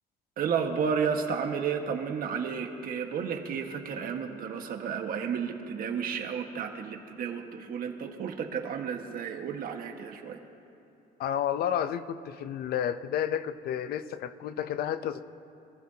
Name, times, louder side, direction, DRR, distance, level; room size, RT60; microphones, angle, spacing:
voice 1, 0.4-10.4, right 6 dB, 60° right, 3 dB, 1.6 m, -32 dB
voice 2, 11.2-15.2, left 9 dB, 65° left, 12 dB, 0.7 m, -31 dB
25.0 x 15.0 x 2.9 m, 2.9 s
cardioid pair, 110°, 17 cm